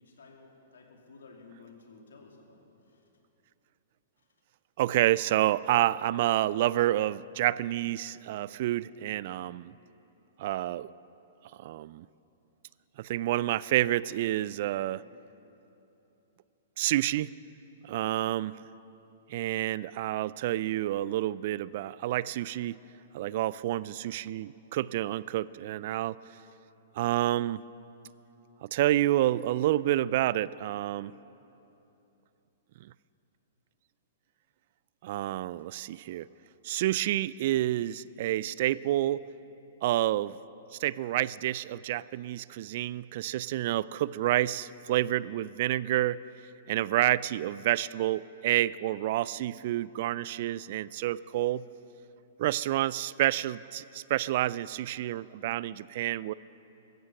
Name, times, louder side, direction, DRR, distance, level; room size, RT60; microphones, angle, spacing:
voice 1, 0.0-3.0 4.2-4.3 35.1-35.2 35.6-35.7, left 4 dB, 80° left, 1 dB, 2.6 m, -54 dB
voice 2, 4.8-9.7 10.4-10.9 11.6-12.1 13.0-15.0 16.8-17.3 17.8-18.5 19.3-22.8 23.1-26.2 26.9-27.6 28.6-31.1 32.8-32.9 35.0-36.3 36.6-39.3 39.8-40.4 40.7-46.2 46.7-51.7 52.4-56.3, right 14 dB, 55° right, 20 dB, 0.3 m, -29 dB
15.5 x 14.5 x 6.0 m, 3.0 s
hypercardioid pair, 120°, 0 cm